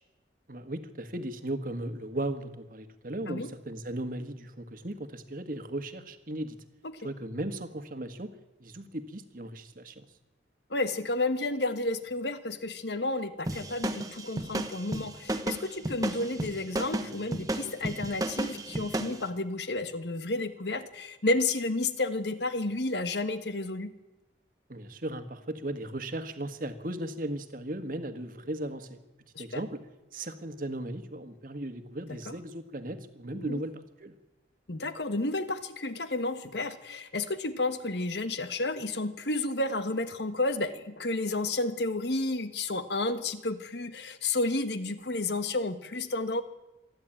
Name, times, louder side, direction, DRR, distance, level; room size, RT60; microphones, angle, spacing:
voice 1, 0.5-6.6 7.0-8.3 8.6-10.1 24.7-29.0 29.4-29.8 30.1-34.1, right 1 dB, 50° right, 8 dB, 1.6 m, -36 dB
voice 2, 10.7-23.9 29.3-29.6 32.1-32.3 33.3-33.6 34.7-46.4, left 2 dB, 70° left, 11 dB, 1.4 m, -31 dB
sound 1, 13.5-19.2, right 1 dB, 20° right, 1.2 m, -33 dB
27.0 x 11.0 x 8.9 m, 1.0 s
head